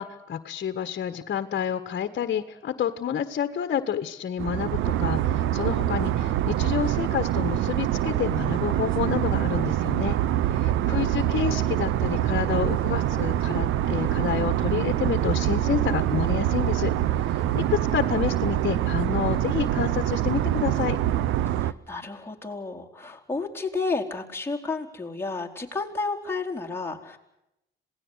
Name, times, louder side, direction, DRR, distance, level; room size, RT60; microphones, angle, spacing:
voice 1, 0.0-10.2 10.5-16.9 17.2-21.0, left 8 dB, 55° left, 9 dB, 1.6 m, -29 dB
sound 1, 4.4-21.7, right 12 dB, 90° right, 0.9 m, -25 dB
voice 2, 10.7-11.2 17.5-17.9 21.6-27.2, left 3 dB, 10° left, -1 dB, 4.3 m, -32 dB
27.0 x 18.0 x 8.3 m, 0.86 s
cardioid pair, 90°, 20 cm